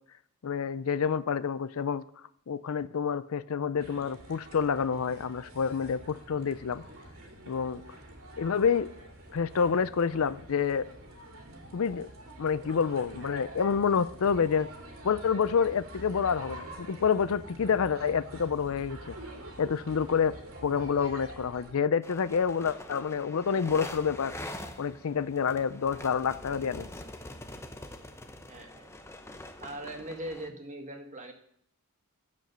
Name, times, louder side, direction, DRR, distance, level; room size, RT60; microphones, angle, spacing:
voice 1, 0.4-2.0 2.5-6.8 7.5-7.8 8.4-8.9 9.3-10.9 11.7-12.1 12.4-14.7 15.0-19.1 19.6-20.4 20.6-24.3 24.8-26.9, left 6 dB, 70° left, 16 dB, 0.5 m, -28 dB
sound 1, 3.8-21.7, right 1 dB, 70° right, 2.5 m, -46 dB
sound 2, 22.0-30.5, left 1 dB, 10° left, 0.8 m, -44 dB
voice 2, 28.5-28.9 29.6-31.3, right 1 dB, 35° right, 4 dB, 1.6 m, -40 dB
15.0 x 5.2 x 6.7 m, 0.69 s
head